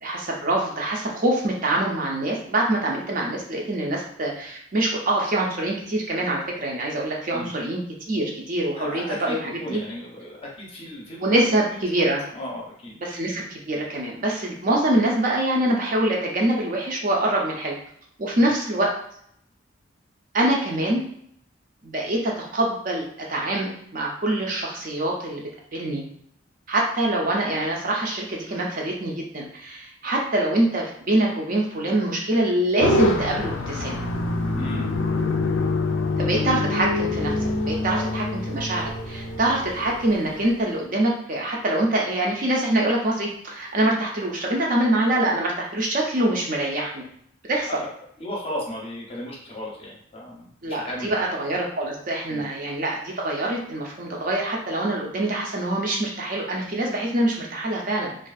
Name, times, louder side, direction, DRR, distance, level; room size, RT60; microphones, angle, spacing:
voice 1, 0.0-7.8 8.1-9.8 11.2-12.2 13.0-17.7 18.2-18.9 20.3-21.0 21.8-25.4 25.7-26.0 26.7-34.0 36.2-47.1 47.4-47.8 50.6-58.2, right 1 dB, 45° right, -1 dB, 0.5 m, -24 dB
voice 2, 8.8-12.9 18.3-18.5 34.5-34.9 38.0-38.1 47.7-47.9 48.2-51.3 52.3-52.5, left 1 dB, 30° left, -3 dB, 0.6 m, -35 dB
sound 1, 32.8-40.5, left 2 dB, 75° left, 0.4 m, -26 dB
2.5 x 2.4 x 2.3 m, 0.69 s
head